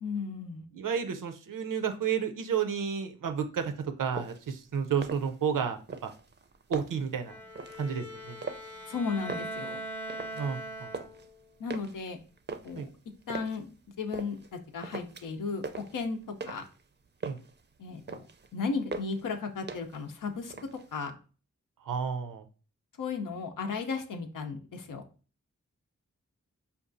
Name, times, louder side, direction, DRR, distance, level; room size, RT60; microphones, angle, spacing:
voice 1, 0.0-0.7 8.9-9.8 11.6-12.2 12.6-12.9 13.3-13.7 14.0-16.2 16.5-16.6 17.8-18.2 18.5-20.5 20.9-21.1 23.0-25.0, left 4 dB, 85° left, 6 dB, 0.6 m, -35 dB
voice 2, 0.7-3.7 4.0-6.1 6.7-7.3 7.8-8.4 10.3-10.9 12.8-12.9 17.2-17.4 21.9-22.4, right 7 dB, 85° right, 7 dB, 0.5 m, -31 dB
sound 1, 4.1-4.5 4.9-5.6 5.9-7.1 7.6-7.9 8.4-8.9 9.2-10.5 10.7-11.3 11.7-13.6 14.1-14.5 14.8-15.4 15.6-16.8 17.1-17.6 17.9-18.5 18.9-19.3 19.7-20.1 20.4-21.1, right 4 dB, 35° right, 0.4 m, -41 dB
Bowed string instrument, 7.2-11.4, right 1 dB, 5° left, 0.6 m, -41 dB
5.1 x 2.3 x 2.5 m, 0.37 s
cardioid pair, 40°, 31 cm